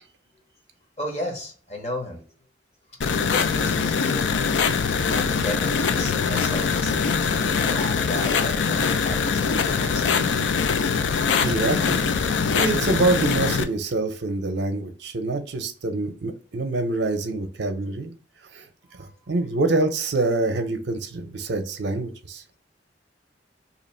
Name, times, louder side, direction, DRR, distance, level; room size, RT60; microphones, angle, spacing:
voice 1, 1.0-2.2 3.3-4.5 5.1-10.5 18.9-19.1, left 1 dB, 35° left, 2 dB, 0.9 m, -34 dB
sound 1, 3.0-13.6, left 5 dB, 75° left, 0.4 m, -23 dB
voice 2, 11.4-18.1 18.5-18.6 19.3-22.4, right 2 dB, 65° right, 6 dB, 0.6 m, -26 dB
2.9 x 2.5 x 4.2 m, 0.40 s
head